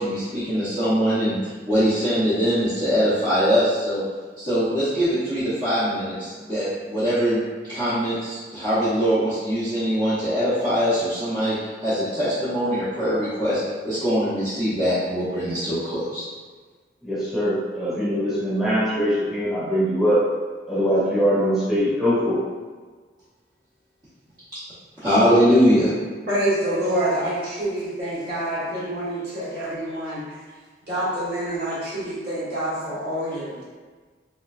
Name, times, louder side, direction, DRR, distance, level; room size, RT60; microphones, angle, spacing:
voice 1, 0.0-4.0 4.4-11.6 11.8-16.2 25.0-25.9, equal, 25° right, -15 dB, 0.8 m, -22 dB
voice 2, 17.0-20.2 20.7-22.4, equal, ahead, -11 dB, 1.1 m, -22 dB
voice 3, 26.3-30.4 30.9-33.6, right 1 dB, 60° right, -9 dB, 1.3 m, -27 dB
3.1 x 3.1 x 2.4 m, 1.4 s
head